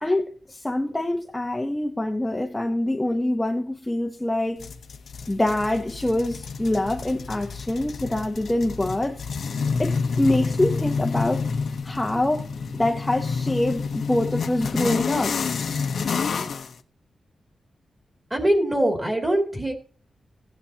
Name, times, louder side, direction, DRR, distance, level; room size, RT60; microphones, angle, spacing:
voice 1, 0.0-4.7 5.3-9.2 9.8-11.5 11.8-12.4 12.7-15.4, left 1 dB, 10° left, 0.8 m, -25 dB
sound 1, 4.6-16.7, left 5 dB, 60° left, 0.8 m, -29 dB
voice 2, 18.3-19.7, right 1 dB, 15° right, 2.6 m, -22 dB
16.5 x 9.5 x 2.8 m
wide cardioid pair, 160°, 0 cm